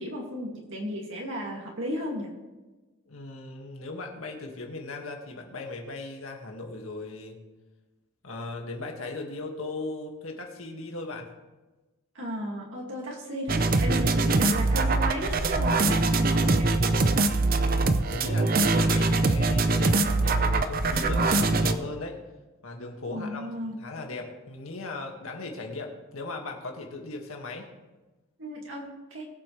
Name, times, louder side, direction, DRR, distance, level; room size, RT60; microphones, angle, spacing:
voice 1, 0.0-2.3 12.1-16.7 23.1-23.8 28.4-29.3, equal, 60° right, -2 dB, 2.2 m, -34 dB
voice 2, 3.1-7.4 8.2-11.3 17.5-22.2 22.6-27.7, left 2 dB, 75° left, 2 dB, 1.9 m, -37 dB
sound 1, 13.5-21.7, right 2 dB, 40° right, 0.6 m, -23 dB
21.0 x 7.8 x 3.3 m, 1.2 s
head